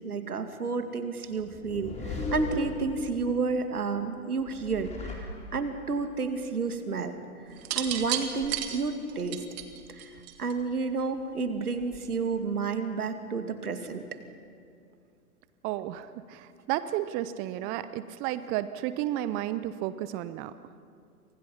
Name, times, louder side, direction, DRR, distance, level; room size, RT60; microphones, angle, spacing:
voice 1, 0.0-7.1 7.7-9.4 9.9-14.0, right 4 dB, 80° right, 7 dB, 2.5 m, -31 dB
sound 1, 1.3-3.4 4.4-5.9, left 3 dB, 15° left, 4.4 m, -37 dB
sound 2, 7.6-10.7 11.8-12.2, right 11 dB, 45° right, 2.4 m, -33 dB
voice 2, 15.6-20.5, right 13 dB, 20° right, 14 dB, 0.5 m, -32 dB
29.5 x 25.5 x 5.7 m, 2.4 s
figure-of-eight pair, 115°, 45 cm